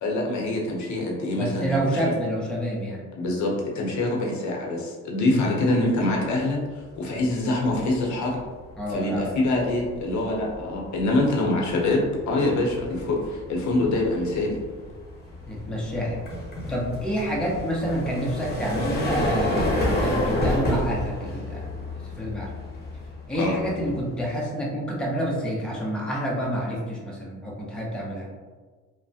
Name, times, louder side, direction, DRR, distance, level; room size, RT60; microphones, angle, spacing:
voice 1, 0.0-2.0 3.2-8.4 8.9-14.6 23.3-23.5, left 2 dB, 70° left, -1 dB, 0.7 m, -25 dB
voice 2, 1.3-3.0 5.3-5.5 8.8-9.4 11.4-11.6 15.5-16.2 16.7-22.5 23.3-28.3, equal, 5° left, -4 dB, 0.6 m, -28 dB
sound 1, 6.9-7.2 7.6-24.4, left 1 dB, 35° left, 0.9 m, -31 dB
3.1 x 2.1 x 2.7 m, 1.4 s
cardioid pair, 90°, 30 cm